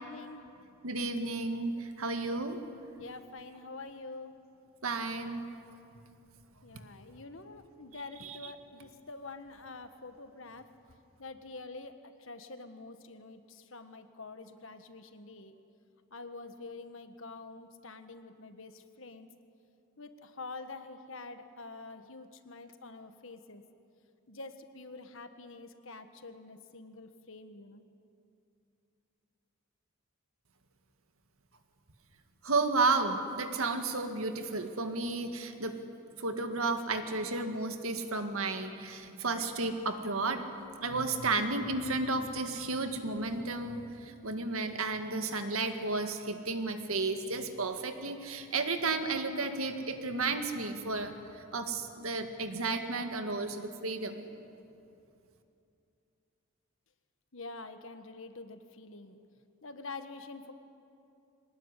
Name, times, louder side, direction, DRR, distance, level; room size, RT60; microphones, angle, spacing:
voice 1, 0.0-0.7 3.0-4.3 6.6-10.7 11.2-15.6 16.1-19.3 20.0-23.6 24.3-27.8 57.3-59.2 59.6-60.5, left 3 dB, 65° left, 9 dB, 1.5 m, -46 dB
voice 2, 0.8-2.6 4.8-5.5 8.2-8.4 32.4-35.8 36.2-40.4 40.8-54.3, right 3 dB, 75° right, 7 dB, 1.9 m, -32 dB
23.5 x 19.0 x 9.9 m, 2.7 s
head